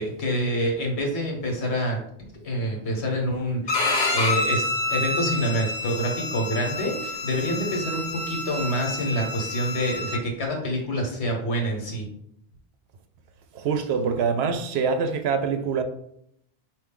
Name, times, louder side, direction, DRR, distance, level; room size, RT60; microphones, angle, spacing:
voice 1, 0.0-2.0 2.4-3.9 4.1-12.1, equal, 80° left, 1.4 m, -27 dB
Bowed string instrument, 3.7-10.2, left 2 dB, 45° left, 0.8 m, -28 dB
voice 2, 13.5-15.8, right 5 dB, 75° right, 0.8 m, -24 dB
4.7 x 2.6 x 3.7 m
omnidirectional pair, 1.1 m